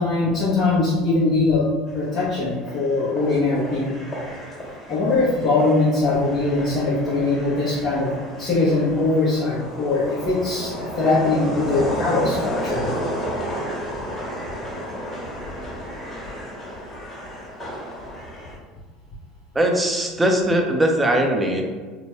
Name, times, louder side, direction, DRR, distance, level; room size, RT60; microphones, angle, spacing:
voice 1, 0.0-1.6 1.9-4.0 4.9-8.1 8.4-12.9, left 3 dB, 45° left, -9 dB, 0.9 m, -21 dB
sound 1, 1.9-18.6, equal, 25° left, 1.5 m, -32 dB
voice 2, 19.5-21.6, right 1 dB, 15° right, 2 dB, 0.5 m, -20 dB
2.7 x 2.2 x 3.1 m, 1.4 s
hypercardioid pair, 85°, 0 cm